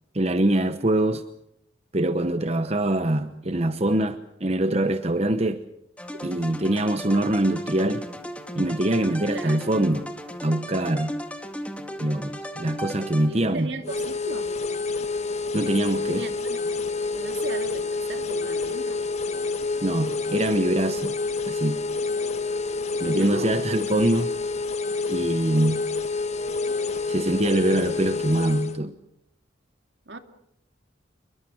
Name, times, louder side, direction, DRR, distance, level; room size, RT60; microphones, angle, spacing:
voice 1, 0.1-1.2 1.9-5.6 6.2-8.0 8.6-10.1 10.4-11.2 12.0-13.7 15.5-16.3 19.8-21.2 21.5-21.8 23.0-24.3 25.1-25.8 27.1-28.9, right 1 dB, 35° right, 10 dB, 0.9 m, -24 dB
sound 1, 6.0-13.7, equal, 5° left, 2.0 m, -36 dB
voice 2, 9.3-9.7 13.3-14.5 15.9-16.6 17.1-19.0 23.1-23.7 30.1-30.2, right 2 dB, 65° right, 7 dB, 2.5 m, -37 dB
sound 2, 13.8-28.8, left 3 dB, 35° left, 1.3 m, -28 dB
27.5 x 23.0 x 6.2 m, 0.77 s
head